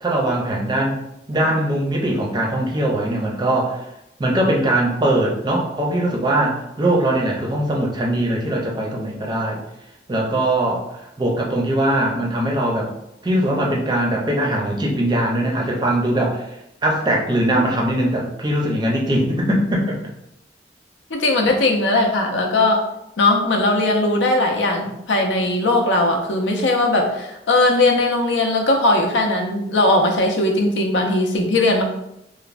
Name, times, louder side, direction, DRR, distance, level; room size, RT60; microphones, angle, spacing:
voice 1, 0.0-1.0 1.3-3.8 4.2-9.6 10.1-12.9 13.2-16.5 16.8-20.0, right 1 dB, 25° right, -1 dB, 0.5 m, -21 dB
voice 2, 21.1-22.8 23.2-31.8, left 2 dB, 85° left, 3 dB, 0.5 m, -19 dB
3.1 x 2.1 x 2.4 m, 0.83 s
head